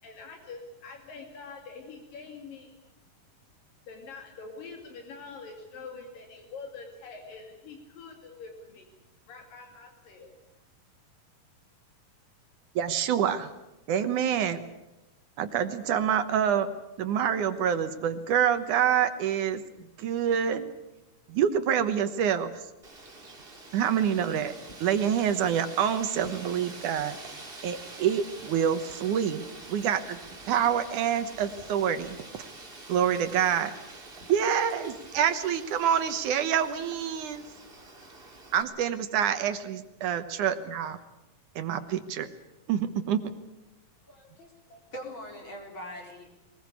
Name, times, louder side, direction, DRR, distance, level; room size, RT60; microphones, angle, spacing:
voice 1, 0.0-2.8 3.9-8.9 9.3-10.4, left 4 dB, 80° left, 3 dB, 4.1 m, -45 dB
voice 2, 12.8-13.5 13.9-14.6 15.4-16.7 17.0-19.6 20.0-20.7 21.3-22.5 23.7-24.5 24.8-27.2 27.6-30.2 30.5-32.5 32.9-33.7 34.3-37.4 38.5-41.0 41.6-42.3 42.7-43.2, right 8 dB, 70° right, 10 dB, 2.5 m, -27 dB
Wind, 22.8-38.6, right 2 dB, 20° right, 2.4 m, -46 dB
voice 3, 44.1-46.4, equal, 35° left, 1 dB, 5.2 m, -43 dB
22.0 x 20.5 x 8.4 m, 0.97 s
omnidirectional pair, 3.9 m